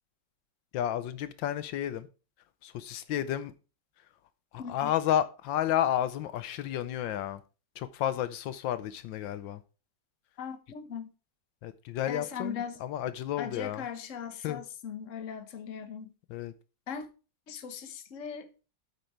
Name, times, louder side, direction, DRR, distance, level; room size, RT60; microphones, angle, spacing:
voice 1, 0.7-2.1 2.6-3.5 4.5-7.4 7.8-9.6 11.6-13.8 14.4-14.6 16.3-16.5, left 11 dB, 85° left, 1.5 m, -31 dB
voice 2, 4.6-4.9 10.4-11.1 12.1-12.8 13.4-16.1 16.9-17.1 17.5-18.5, left 7 dB, 45° left, 1.4 m, -39 dB
8.5 x 8.3 x 4.5 m
omnidirectional pair, 2.0 m